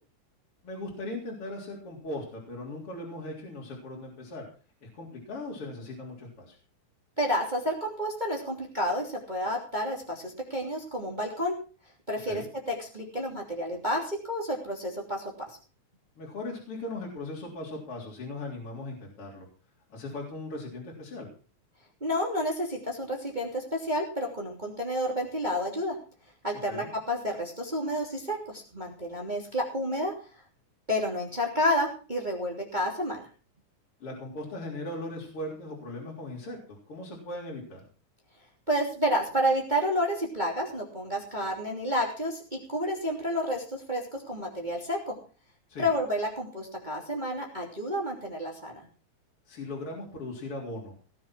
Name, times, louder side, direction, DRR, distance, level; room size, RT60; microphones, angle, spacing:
voice 1, 0.6-4.5 4.8-6.6 12.3-12.4 16.2-19.5 19.9-21.3 26.7-26.9 34.0-37.9 45.7-45.9 49.5-50.9, left 2 dB, 45° left, -2 dB, 4.5 m, -38 dB
voice 2, 7.2-11.6 12.1-12.4 12.7-15.2 22.0-26.0 26.4-30.1 30.9-33.2 38.7-45.1 45.8-48.8, equal, 15° right, 0 dB, 2.9 m, -30 dB
18.5 x 7.5 x 6.1 m, 0.36 s
omnidirectional pair, 3.5 m